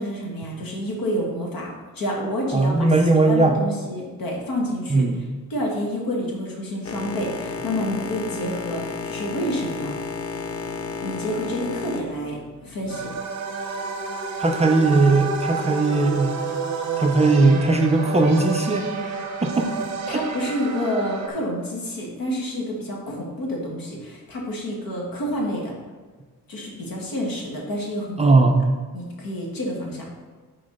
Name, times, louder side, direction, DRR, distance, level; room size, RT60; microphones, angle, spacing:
voice 1, 0.0-2.9 3.1-5.1 5.5-9.9 11.0-13.1 19.5-19.7 20.1-25.7 26.5-28.4 28.9-30.1, equal, 75° left, -1 dB, 1.8 m, -29 dB
voice 2, 2.5-3.5 4.9-5.2 14.4-16.3 17.0-18.9 19.4-19.7 20.1-20.2 28.2-28.7, right 3 dB, 20° right, 3 dB, 0.4 m, -18 dB
Boat Water vehicle, 6.8-13.2, left 4 dB, 45° left, 0.5 m, -32 dB
sound 1, 12.9-21.3, right 5 dB, 50° right, 0.8 m, -30 dB
6.6 x 4.2 x 5.4 m, 1.4 s
wide cardioid pair, 145°, 35 cm